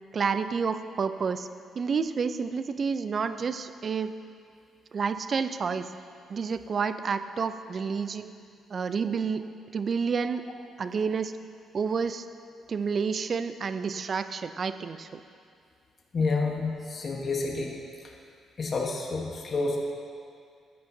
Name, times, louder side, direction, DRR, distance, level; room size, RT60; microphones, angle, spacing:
voice 1, 0.1-1.5 1.8-4.1 4.9-5.9 6.3-8.3 8.7-9.4 9.7-10.4 10.8-11.3 11.7-12.3 12.7-15.2, right 5 dB, 45° right, 11 dB, 0.4 m, -29 dB
voice 2, 16.1-17.8 18.6-19.8, left 3 dB, 45° left, 0 dB, 1.1 m, -29 dB
12.5 x 8.4 x 2.7 m, 2.3 s
cardioid pair, 90°, 0 cm